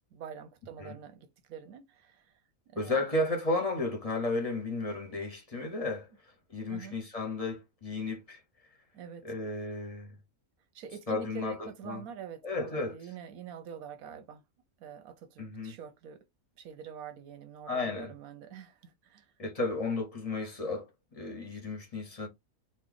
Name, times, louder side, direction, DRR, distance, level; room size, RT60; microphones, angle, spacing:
voice 1, 0.1-2.3 2.7-3.0 6.7-7.0 8.9-9.2 10.7-14.4 14.8-16.2 16.6-19.3, right 6 dB, 85° right, 1.1 m, -45 dB
voice 2, 2.8-6.1 6.5-8.4 9.2-10.1 11.1-12.0 12.4-13.0 15.4-15.7 17.7-18.1 19.4-20.9 21.1-22.3, left 2 dB, 35° left, 0.7 m, -33 dB
3.2 x 2.1 x 3.8 m
omnidirectional pair, 1.5 m